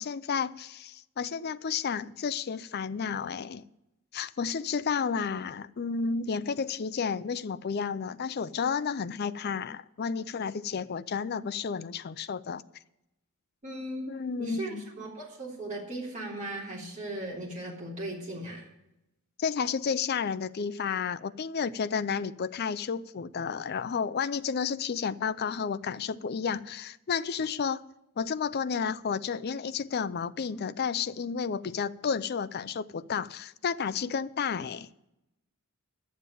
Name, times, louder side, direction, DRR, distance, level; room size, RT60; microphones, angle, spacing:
voice 1, 0.0-3.6 4.1-12.6 14.1-14.8 19.4-27.8 28.2-34.9, left 6 dB, 45° left, 0.4 m, -31 dB
voice 2, 13.6-14.1 14.4-18.7, right 1 dB, 35° right, 3.2 m, -37 dB
11.5 x 7.4 x 8.3 m
head